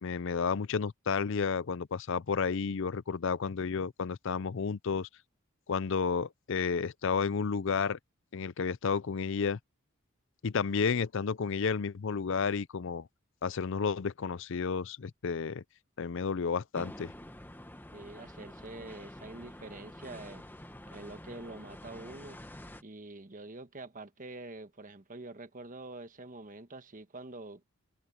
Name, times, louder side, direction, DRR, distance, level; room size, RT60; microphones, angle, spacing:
voice 1, 0.0-5.1 5.7-8.0 8.3-9.6 10.4-13.1 13.4-15.6 16.0-17.1, left 5 dB, 60° left, 0.5 m, -31 dB
sound 1, 16.7-22.8, left 1 dB, 10° left, 1.2 m, -48 dB
voice 2, 17.9-20.4 20.9-22.4 22.8-27.6, right 2 dB, 40° right, 1.4 m, -46 dB
head